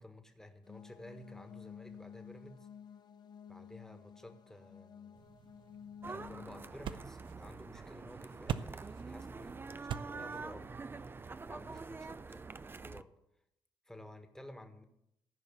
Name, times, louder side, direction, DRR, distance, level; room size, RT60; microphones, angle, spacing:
voice 1, 0.0-2.7 3.5-5.2 6.1-10.7 11.5-12.4 12.7-13.1 13.8-14.9, left 1 dB, 5° left, 6 dB, 1.6 m, -53 dB
sound 1, 0.6-6.6, left 8 dB, 55° left, 0.7 m, -52 dB
sound 2, 5.1-12.2, right 9 dB, 75° right, 0.6 m, -46 dB
sound 3, 6.0-13.0, right 4 dB, 25° right, 0.5 m, -46 dB
14.5 x 5.3 x 7.2 m, 0.80 s
cardioid pair, 80°, 9 cm